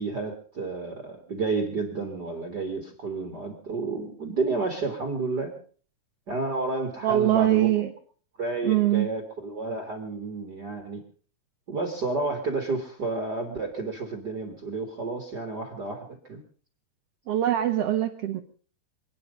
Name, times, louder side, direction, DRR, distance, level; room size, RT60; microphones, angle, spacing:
voice 1, 0.0-5.6 6.3-7.7 8.4-11.0 11.7-16.4, right 3 dB, 35° right, 5 dB, 2.3 m, -31 dB
voice 2, 7.0-7.9 8.6-9.1 17.3-18.4, right 12 dB, 60° right, 4 dB, 1.9 m, -23 dB
27.0 x 9.6 x 5.3 m, 0.43 s
omnidirectional pair, 3.7 m